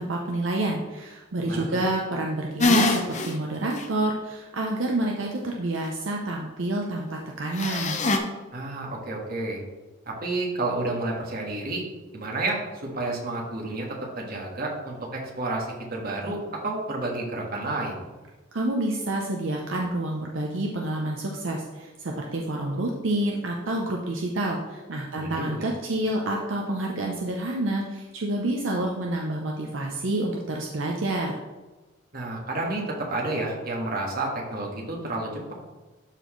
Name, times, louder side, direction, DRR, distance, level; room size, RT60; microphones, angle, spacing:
voice 1, 0.0-8.0 18.5-31.4, right 1 dB, 75° right, 0 dB, 0.7 m, -28 dB
voice 2, 1.4-1.8 8.5-9.6 10.0-11.8 12.1-18.0 25.2-25.7 32.1-35.5, right 2 dB, 50° right, -2 dB, 1.7 m, -30 dB
sound 1, 2.6-3.3 3.8-3.9 7.6-8.2, left 3 dB, 40° left, 0.7 m, -22 dB
12.0 x 4.1 x 3.1 m, 1.2 s
head